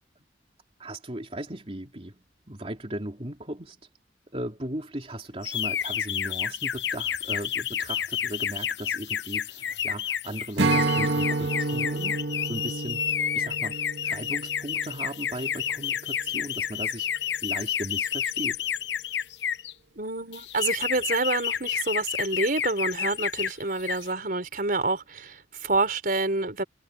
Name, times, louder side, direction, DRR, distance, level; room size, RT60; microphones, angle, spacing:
voice 1, 0.8-3.9 4.3-13.0 13.4-13.8 14.0-17.1 17.4-18.6, right 1 dB, 35° right, 3.4 m, -37 dB
sound 1, 5.4-19.7 20.3-23.5 23.8-24.1, left 9 dB, 70° left, 0.9 m, -30 dB
Strum, 10.6-16.0, right 3 dB, 75° right, 1.9 m, -29 dB
voice 2, 20.0-26.6, right 3 dB, 50° right, 4.2 m, -28 dB
head